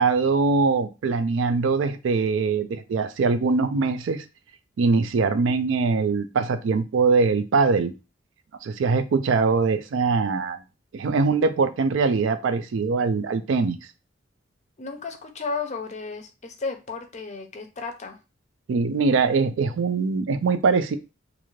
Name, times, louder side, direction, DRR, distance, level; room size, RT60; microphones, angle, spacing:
voice 1, 0.0-4.2 4.8-7.9 8.6-10.6 10.9-13.8 18.7-21.0, right 4 dB, 70° right, 0.4 m, -22 dB
voice 2, 14.8-18.2, left 4 dB, 35° left, 0.5 m, -33 dB
2.6 x 2.4 x 3.1 m
head